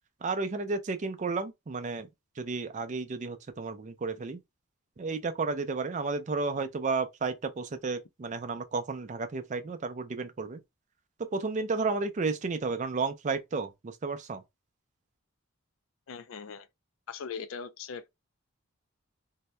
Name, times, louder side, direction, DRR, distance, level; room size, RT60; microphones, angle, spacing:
voice 1, 0.2-2.1 2.4-4.4 5.0-10.6 11.2-14.4, right 4 dB, 35° right, 0.4 m, -32 dB
voice 2, 16.1-16.7 17.1-18.1, left 6 dB, 70° left, 0.4 m, -40 dB
2.7 x 2.2 x 3.1 m
head